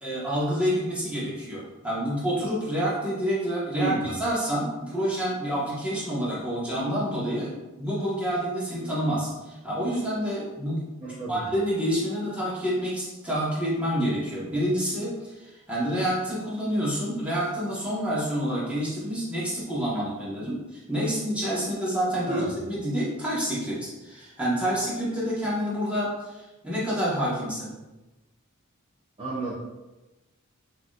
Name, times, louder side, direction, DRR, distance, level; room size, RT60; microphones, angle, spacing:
voice 1, 0.0-3.9 4.2-10.8 11.3-27.7, equal, 5° right, -8 dB, 1.4 m, -28 dB
voice 2, 3.7-4.1 11.0-11.5 22.3-22.6 29.2-29.5, right 2 dB, 25° right, -7 dB, 0.7 m, -31 dB
6.0 x 2.9 x 2.5 m, 1.1 s
head